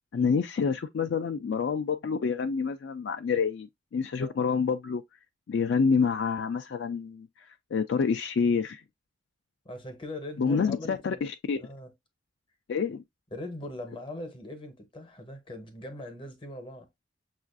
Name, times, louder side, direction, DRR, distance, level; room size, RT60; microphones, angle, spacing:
voice 1, 0.1-5.0 5.5-7.3 7.7-8.8 10.4-11.6 12.7-13.0, left 5 dB, 65° left, 0.3 m, -27 dB
voice 2, 9.6-11.2 11.6-11.9 13.3-16.9, left 1 dB, 25° left, 0.8 m, -41 dB
6.4 x 2.4 x 2.4 m
head